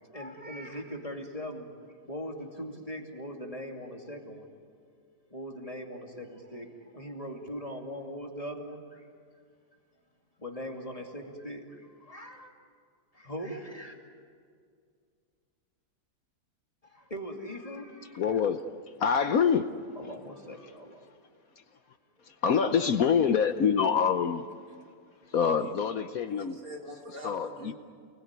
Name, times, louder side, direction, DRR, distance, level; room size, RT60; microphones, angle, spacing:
voice 1, 0.1-1.7 2.0-4.5 5.3-9.1 10.4-12.5 13.1-14.0 16.8-18.4 20.0-21.1 22.2-22.3, equal, 20° left, 1 dB, 2.6 m, -40 dB
voice 2, 18.1-18.6 19.0-19.7 22.3-24.5 25.3-26.6 27.2-27.7, left 7 dB, 60° left, 9 dB, 1.2 m, -25 dB
voice 3, 25.3-25.7 26.4-27.7, equal, 55° right, 0 dB, 3.6 m, -44 dB
29.0 x 20.5 x 9.7 m, 2.1 s
omnidirectional pair, 1.8 m